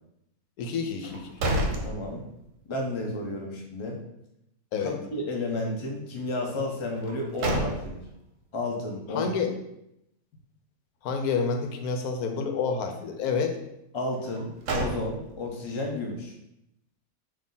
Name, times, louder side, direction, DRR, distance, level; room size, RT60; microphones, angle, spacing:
voice 1, 0.6-1.3 4.7-5.0 9.1-9.5 11.0-13.6, left 5 dB, 90° left, 5 dB, 1.1 m, -28 dB
sound 1, 1.0-2.7 3.0-3.1 6.9-8.2 14.2-15.5, right 1 dB, 65° right, 1.0 m, -31 dB
voice 2, 1.8-2.3 2.7-4.0 4.8-8.0 8.5-9.3 13.9-16.3, left 2 dB, 45° left, 0 dB, 0.4 m, -32 dB
3.6 x 2.8 x 4.0 m, 0.82 s
omnidirectional pair, 1.6 m